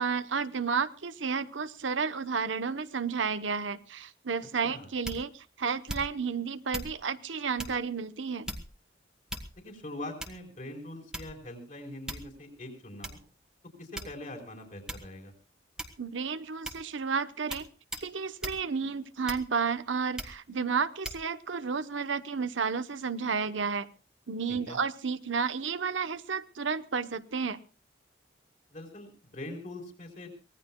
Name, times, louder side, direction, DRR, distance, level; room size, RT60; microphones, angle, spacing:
voice 1, 0.0-8.5 16.0-17.7 18.0-23.9 24.3-27.6, right 5 dB, 80° right, 11 dB, 0.9 m, -32 dB
sound 1, 5.0-5.4 5.9-6.3 6.7-7.0 7.6-7.8 8.5-8.8 9.3-9.7 10.2-10.5 11.1-11.5 12.1-12.4 13.0-13.2 14.0-14.4 14.9-15.1 15.8-16.1 16.7-16.9 17.5-17.7 17.9-18.1 18.4-18.6 19.3-19.7 20.2-20.4 21.0-21.2, right 1 dB, 5° right, 1.4 m, -39 dB
voice 2, 9.6-13.2 13.8-15.3 24.5-24.8 28.7-30.3, left 1 dB, 40° left, 4 dB, 4.3 m, -43 dB
24.0 x 18.5 x 2.3 m, 0.32 s
head